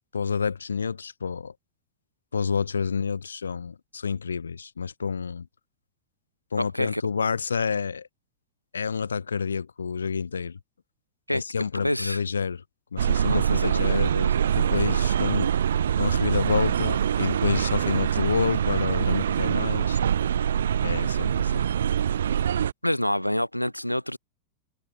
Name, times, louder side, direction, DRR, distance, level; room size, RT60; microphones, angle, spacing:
voice 1, 0.1-1.5 2.3-5.5 6.5-8.1 8.7-10.6 11.3-12.6 12.9-14.1 14.5-15.5 16.0-20.0 20.8-21.6, left 6 dB, 75° left, 2.8 m, -28 dB
voice 2, 6.6-7.3 11.3-11.4 11.7-12.2 13.3-14.5 14.9-15.0 22.8-24.2, left 1 dB, 90° left, 7.4 m, -28 dB
sound 1, 13.0-22.7, right 9 dB, 65° right, 2.0 m, -24 dB
figure-of-eight pair, 90°, 0 cm